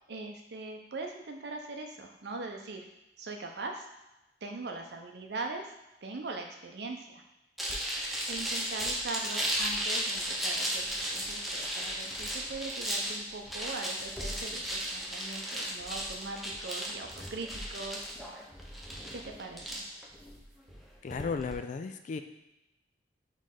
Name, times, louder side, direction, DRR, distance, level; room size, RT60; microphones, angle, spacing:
voice 1, 0.1-2.8 3.2-3.8 4.4-5.6 6.0-7.2 8.3-18.0 19.1-19.9, right 3 dB, 65° right, 3 dB, 0.6 m, -41 dB
sound 1, 7.6-21.5, equal, ahead, 0.6 m, -35 dB
voice 2, 21.0-22.2, left 5 dB, 45° left, 8 dB, 0.3 m, -34 dB
4.1 x 3.2 x 3.7 m, 0.94 s
head